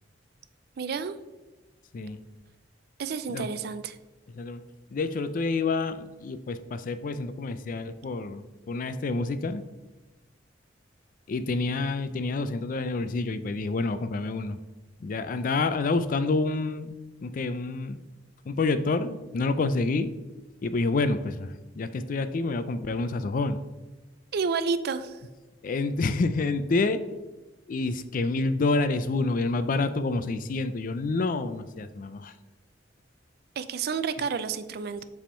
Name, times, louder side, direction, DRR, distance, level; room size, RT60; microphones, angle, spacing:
voice 1, 0.8-1.1 3.0-4.0 24.3-25.2 33.6-35.0, right 5 dB, 55° right, 12 dB, 0.4 m, -30 dB
voice 2, 4.9-9.7 11.3-14.6 15.0-17.0 17.2-18.0 18.5-20.1 20.6-23.6 25.6-27.0 27.7-32.3, left 3 dB, 45° left, 11 dB, 0.4 m, -28 dB
7.4 x 3.5 x 4.4 m, 1.1 s
head